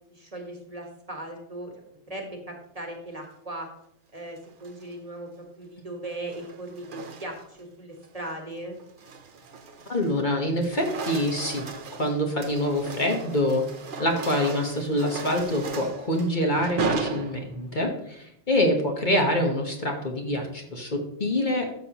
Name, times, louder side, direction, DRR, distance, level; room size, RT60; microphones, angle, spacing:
voice 1, 0.1-1.7 2.1-3.7 4.1-5.3 5.6-8.8, right 1 dB, 30° right, 2 dB, 1.5 m, -38 dB
sound 1, 4.4-4.9 6.0-7.6 8.0-8.3 8.8-10.2 10.5-17.8, right 4 dB, 45° right, 0.9 m, -36 dB
voice 2, 9.9-13.6 14.0-21.7, left 1 dB, 40° left, 2 dB, 1.3 m, -26 dB
12.0 x 6.8 x 3.0 m, 0.76 s
omnidirectional pair, 1.3 m